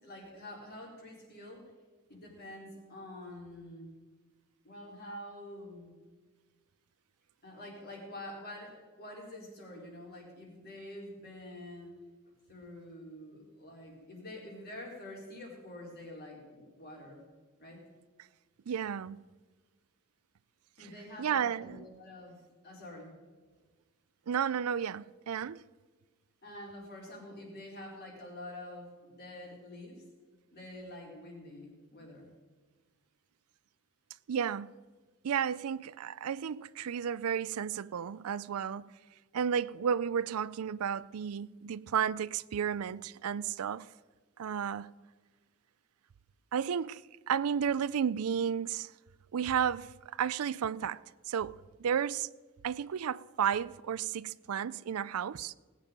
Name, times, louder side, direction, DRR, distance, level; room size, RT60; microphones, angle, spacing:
voice 1, 0.0-1.7 2.1-3.9 4.6-5.9 7.4-11.9 12.5-17.2 17.6-17.8 20.8-23.2 26.4-30.0 30.5-32.3, left 1 dB, 50° left, 4.2 m, -47 dB
voice 2, 18.7-19.2 21.2-21.8 24.3-25.6 34.3-34.7 35.2-38.9 39.3-43.9 44.4-44.9 46.5-47.0 47.3-48.9 49.3-51.0 51.3-52.3 52.6-55.5, right 8 dB, 85° right, 0.4 m, -32 dB
19.0 x 9.0 x 5.2 m
head